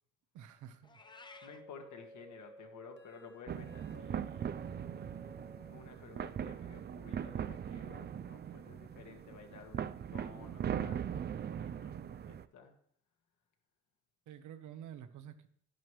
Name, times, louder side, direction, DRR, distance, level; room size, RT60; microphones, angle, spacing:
voice 1, 0.3-1.0 14.3-15.5, right 9 dB, 80° right, 10 dB, 0.9 m, -49 dB
Meow, 0.8-1.6, left 3 dB, 15° left, 0.7 m, -55 dB
sound 1, 1.0-5.9, equal, 40° left, 1.2 m, -56 dB
voice 2, 1.2-4.5 5.5-12.7, left 5 dB, 70° left, 4 dB, 1.7 m, -54 dB
sound 2, 3.5-12.4, right 9 dB, 35° right, 0.4 m, -40 dB
11.0 x 10.5 x 3.2 m, 0.65 s
cardioid pair, 90°, 30 cm